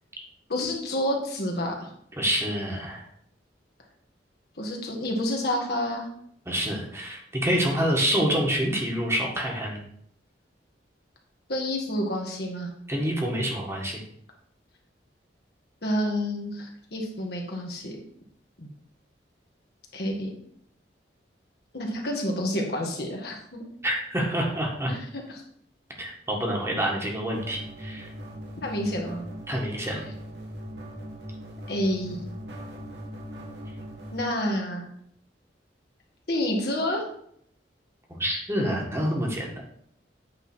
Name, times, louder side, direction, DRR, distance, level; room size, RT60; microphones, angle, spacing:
voice 1, 0.5-1.9 4.6-6.1 11.5-12.7 15.8-18.0 18.6-18.7 19.9-20.3 21.7-23.6 24.9-25.4 28.6-29.2 31.7-32.3 34.1-34.9 36.3-37.1, left 1 dB, 65° left, 0 dB, 2.0 m, -29 dB
voice 2, 2.2-3.0 6.5-9.8 12.9-14.0 23.8-24.9 26.0-28.1 29.5-30.0 38.1-39.6, equal, 15° right, -1 dB, 1.7 m, -27 dB
sound 1, 27.3-34.2, equal, 75° right, 2.1 m, -40 dB
8.9 x 4.0 x 6.2 m, 0.67 s
head